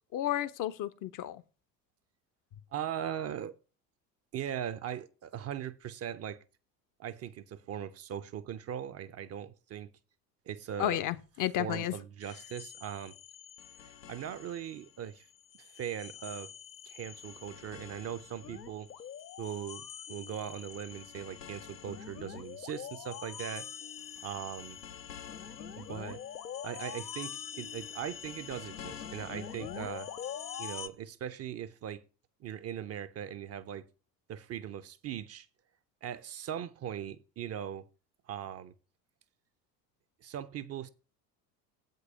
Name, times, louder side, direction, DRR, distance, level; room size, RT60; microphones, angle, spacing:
voice 1, 0.1-1.4 10.8-11.9, left 13 dB, 40° left, 0.7 m, -32 dB
voice 2, 2.7-3.6 4.3-6.4 7.0-9.9 10.5-11.0 11.6-13.1 13.8-15.3 15.6-16.5 16.8-18.9 19.4-23.7 24.2-24.8 25.8-26.2 26.6-30.1 30.6-32.0 32.4-33.9 34.3-35.5 36.0-37.9 38.3-38.7 40.2-40.9, right 9 dB, 30° right, 0.6 m, -40 dB
sound 1, 12.2-14.9 15.3-30.9, left 8 dB, 80° left, 0.8 m, -45 dB
7.9 x 5.4 x 6.5 m
figure-of-eight pair, 65°, 50 cm